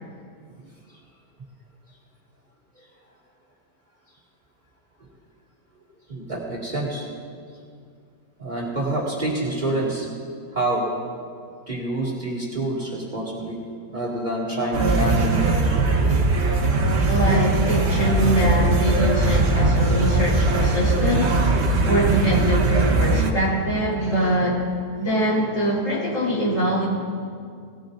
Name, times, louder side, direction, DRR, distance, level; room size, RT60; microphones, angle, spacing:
voice 1, 6.1-7.1 8.4-10.1 10.5-10.9 11.7-13.6 13.9-15.8, right 1 dB, 30° right, -5 dB, 2.5 m, -27 dB
sound 1, 14.7-23.3, right 2 dB, 45° right, 1.3 m, -20 dB
voice 2, 17.0-21.4 21.8-24.6 25.0-26.9, right 1 dB, 50° left, -7 dB, 4.8 m, -23 dB
19.0 x 17.0 x 2.7 m, 2.2 s
omnidirectional pair, 1.7 m